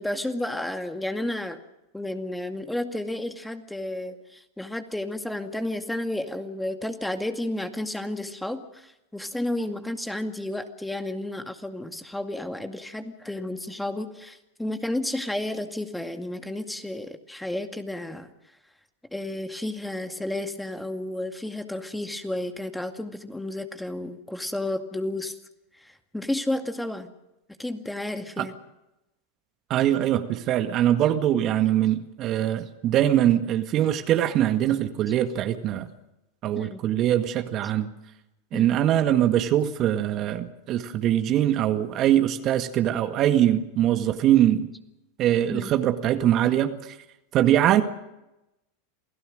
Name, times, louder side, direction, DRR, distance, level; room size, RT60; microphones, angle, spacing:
voice 1, 0.0-1.6 1.9-18.3 19.1-25.4 25.7-27.1 27.6-28.5 36.6-36.8 38.5-38.7 45.5-45.7, left 1 dB, 5° left, 7 dB, 2.2 m, -32 dB
voice 2, 29.7-35.9 36.4-37.9 38.5-44.7 45.2-47.0 47.3-47.8, right 11 dB, 45° right, 8 dB, 1.9 m, -22 dB
28.0 x 17.0 x 6.5 m, 0.92 s
hypercardioid pair, 100°, 0 cm